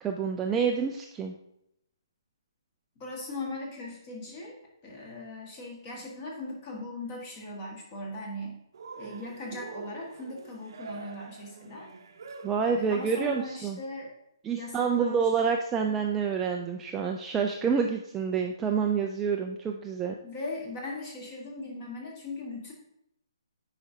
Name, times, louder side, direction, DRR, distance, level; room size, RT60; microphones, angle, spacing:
voice 1, 0.0-1.3 12.4-13.8 14.4-20.1, right 6 dB, 10° right, 1 dB, 0.3 m, -28 dB
voice 2, 2.9-4.6 4.8-8.6 9.0-11.9 12.8-14.1 14.5-15.3 20.2-22.7, left 2 dB, 25° left, -1 dB, 1.6 m, -39 dB
Cheering, 8.7-13.7, right 4 dB, 60° right, 0.7 m, -45 dB
8.9 x 4.9 x 2.8 m, 0.79 s
hypercardioid pair, 160°, 2 cm